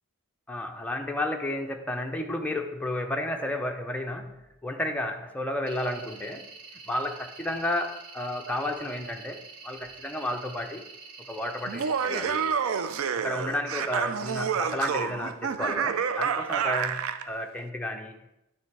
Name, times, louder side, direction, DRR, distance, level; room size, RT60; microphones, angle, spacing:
voice 1, 0.5-6.5 6.9-10.9 11.3-12.4 13.2-18.2, left 1 dB, 5° left, 2 dB, 0.5 m, -32 dB
sound 1, 5.7-12.5, right 4 dB, 85° right, 1.1 m, -47 dB
Laughter, 11.7-17.3, right 7 dB, 65° right, 0.4 m, -28 dB
9.4 x 3.3 x 4.6 m, 0.87 s
head